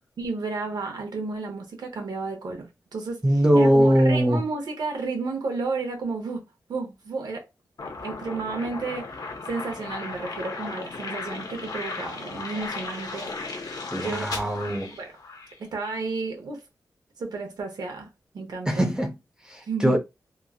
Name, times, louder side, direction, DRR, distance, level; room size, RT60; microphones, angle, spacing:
voice 1, 0.2-3.2 3.5-6.4 6.7-7.5 8.0-14.3 15.0-15.2 15.6-16.6 17.2-18.8 19.7-20.0, right 4 dB, 80° right, 0.8 m, -32 dB
voice 2, 3.2-4.4 13.9-14.9 18.7-19.1 19.5-20.0, equal, 10° right, 0.6 m, -21 dB
sound 1, 7.8-15.6, left 3 dB, 65° left, 0.7 m, -36 dB
3.0 x 2.5 x 2.3 m
wide cardioid pair, 120°, 7 cm